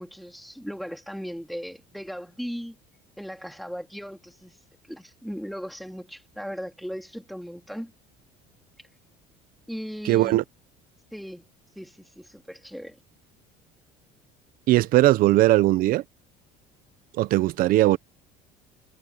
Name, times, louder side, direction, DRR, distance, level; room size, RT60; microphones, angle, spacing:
voice 1, 0.0-2.8 3.2-4.5 4.9-7.9 9.7-10.4 11.1-11.4 11.8-13.0, equal, ahead, 3.5 m, -37 dB
voice 2, 10.0-10.4 14.7-16.0 17.2-18.0, right 16 dB, 60° right, 0.8 m, -19 dB
cardioid pair, 120°, 17 cm